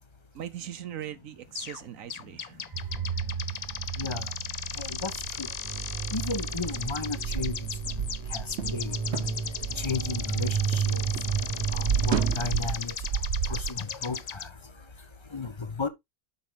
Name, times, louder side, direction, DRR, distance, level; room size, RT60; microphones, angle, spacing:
voice 1, 0.3-4.0, right 10 dB, 80° right, 1.2 m, -42 dB
sound 1, 1.6-1.8 2.1-14.5, left 8 dB, 60° left, 0.4 m, -37 dB
sound 2, 2.7-12.4, right 6 dB, 30° right, 1.0 m, -32 dB
voice 2, 4.8-5.1 5.4-5.5 6.1-7.6 8.3-8.4 8.7-8.9 9.8-11.0 11.7-12.9 13.5-14.5 15.3-15.9, left 4 dB, 25° left, 0.7 m, -33 dB
sound 3, 6.5-10.9 11.2-13.7, right 8 dB, 60° right, 1.1 m, -32 dB
8.0 x 5.7 x 3.7 m
omnidirectional pair, 1.4 m